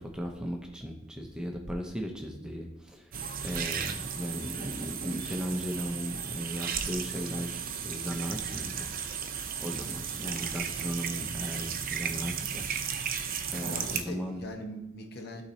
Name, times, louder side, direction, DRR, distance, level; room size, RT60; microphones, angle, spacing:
voice 1, 0.0-3.1 3.4-8.9 9.6-12.7 13.5-14.4, equal, 5° right, 1 dB, 0.7 m, -36 dB
sound 1, 3.1-14.0, right 7 dB, 45° right, 0.6 m, -35 dB
voice 2, 13.6-15.4, equal, 55° left, 3 dB, 1.0 m, -42 dB
12.0 x 4.1 x 2.8 m, 0.94 s
head